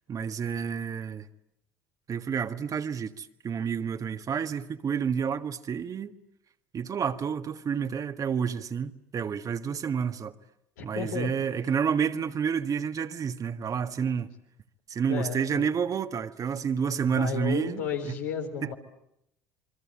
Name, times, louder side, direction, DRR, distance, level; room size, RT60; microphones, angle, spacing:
voice 1, 0.1-1.3 2.1-6.1 6.7-10.3 10.8-14.3 14.9-18.2 18.6-18.7, right 7 dB, 40° right, 1.6 m, -29 dB
voice 2, 10.8-11.3 15.1-15.7 17.0-18.7, left 7 dB, 85° left, 3.9 m, -33 dB
27.5 x 23.5 x 8.7 m
hypercardioid pair, 70°, 9 cm